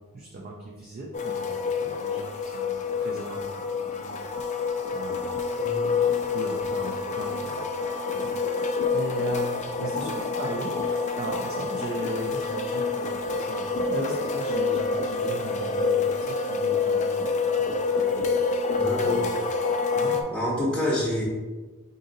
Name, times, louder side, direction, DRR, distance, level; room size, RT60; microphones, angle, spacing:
voice 1, 0.1-3.4 3.7-5.3 6.0-7.6 8.1-8.3 8.6-19.4 20.0-20.2, right 2 dB, 45° right, -2 dB, 0.5 m, -38 dB
sound 1, 1.1-20.2, left 4 dB, 35° left, 0.3 m, -27 dB
voice 2, 5.6-5.9 18.7-19.3 20.3-21.2, left 1 dB, 5° left, -7 dB, 0.7 m, -27 dB
3.9 x 2.7 x 3.9 m, 1.3 s
head